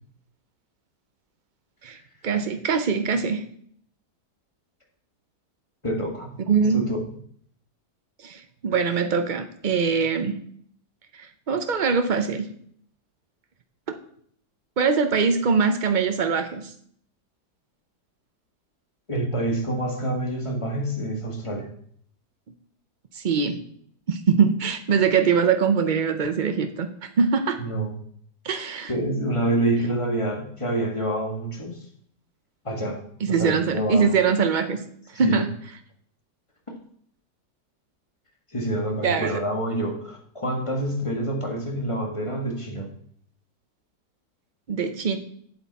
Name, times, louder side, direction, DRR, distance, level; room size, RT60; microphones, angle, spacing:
voice 1, 2.2-3.4 6.5-6.9 8.2-10.4 11.1-12.5 14.8-16.7 23.1-23.6 24.1-26.9 27.2-27.6 28.4-28.9 33.2-34.8 35.1-35.5 39.0-39.4 44.7-45.2, right 6 dB, 90° right, 7 dB, 0.4 m, -22 dB
voice 2, 5.8-6.3 6.7-7.0 19.1-21.7 27.6-27.9 28.9-31.9 32.6-33.0 33.3-34.1 35.1-35.4 38.5-42.9, right 1 dB, 20° left, 1 dB, 1.6 m, -27 dB
7.9 x 7.8 x 4.1 m, 0.62 s
omnidirectional pair, 1.8 m